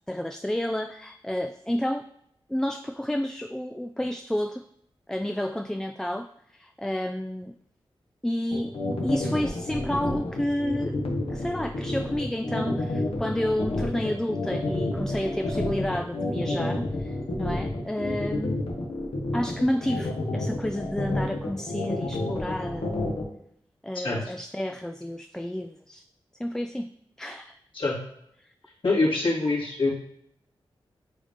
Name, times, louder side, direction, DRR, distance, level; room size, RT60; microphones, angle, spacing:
voice 1, 0.1-2.1 2.5-4.6 5.1-7.5 8.2-8.7 9.0-18.6 19.3-23.0 23.8-26.0 26.4-26.9 27.2-27.6 28.4-28.5, left 1 dB, 5° left, 8 dB, 0.3 m, -30 dB
sound 1, 8.5-23.2, left 2 dB, 70° left, 1.3 m, -29 dB
voice 2, 28.8-29.9, left 2 dB, 55° left, -6 dB, 2.4 m, -24 dB
8.1 x 2.8 x 5.1 m, 0.73 s
cardioid pair, 55°, 10 cm